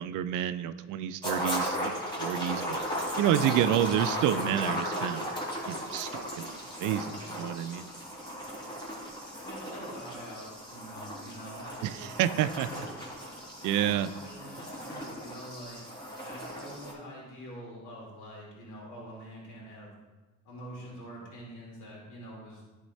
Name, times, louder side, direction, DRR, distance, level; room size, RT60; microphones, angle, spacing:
voice 1, 0.0-2.8 3.2-5.3 5.7-7.9 11.8-12.9 13.6-14.1, right 11 dB, 85° right, 12 dB, 0.5 m, -29 dB
sound 1, 1.2-16.9, equal, 15° left, 2.1 m, -36 dB
voice 2, 9.4-11.6 14.1-15.8 16.2-19.9 20.4-22.6, equal, 80° left, -3 dB, 2.2 m, -45 dB
10.5 x 3.7 x 4.1 m, 1.2 s
cardioid pair, 90°, 30 cm